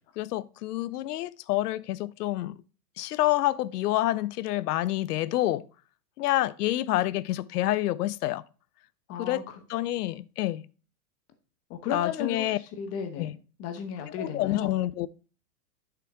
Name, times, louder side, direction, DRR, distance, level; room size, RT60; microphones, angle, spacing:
voice 1, 0.2-2.5 3.0-5.7 6.2-8.4 9.1-10.6 11.9-12.6 13.2-13.3 14.2-15.1, left 15 dB, 75° left, 0.6 m, -28 dB
voice 2, 9.1-9.6 11.7-14.7, left 7 dB, 30° left, 1.0 m, -35 dB
7.3 x 5.7 x 3.6 m
hypercardioid pair, 145°, 48 cm